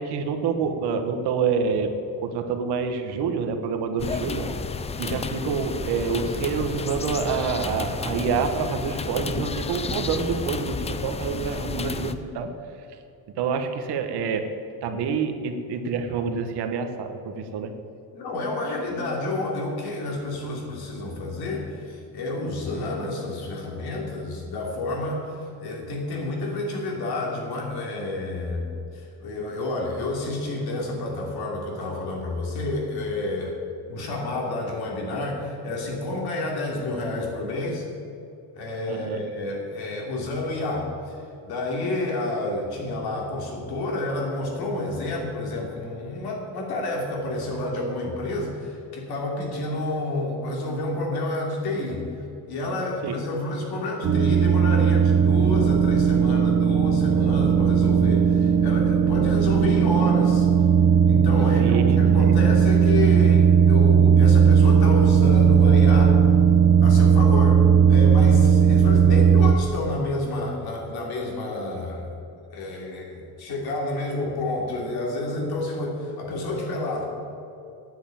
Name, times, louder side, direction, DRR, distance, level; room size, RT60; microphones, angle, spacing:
voice 1, 0.0-1.9 2.2-4.5 5.0-12.5 13.3-14.5 14.8-17.7 38.9-39.2 53.0-53.2 61.6-62.4, right 5 dB, 85° right, 6 dB, 1.3 m, -27 dB
sound 1, 4.0-12.1, left 4 dB, 20° left, 0.3 m, -31 dB
voice 2, 18.1-28.6 28.9-33.5 33.9-37.9 38.5-52.1 52.5-60.5 61.0-66.2 66.8-72.2 72.5-77.1, left 2 dB, 70° left, -1 dB, 3.0 m, -29 dB
sound 2, 54.0-69.5, right 7 dB, 45° right, 0.8 m, -17 dB
9.3 x 8.1 x 8.9 m, 2.7 s
cardioid pair, 160°, 38 cm